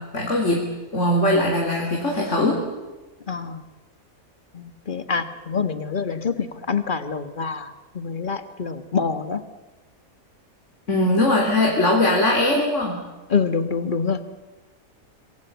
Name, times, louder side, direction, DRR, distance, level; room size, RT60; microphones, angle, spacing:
voice 1, 0.1-0.6 0.9-2.6 10.9-13.0, left 1 dB, 55° left, -1 dB, 4.0 m, -20 dB
voice 2, 3.3-3.6 4.5-9.4 13.3-14.2, left 5 dB, 35° left, 10 dB, 1.7 m, -26 dB
26.5 x 22.5 x 8.2 m, 1.2 s
omnidirectional pair, 1.5 m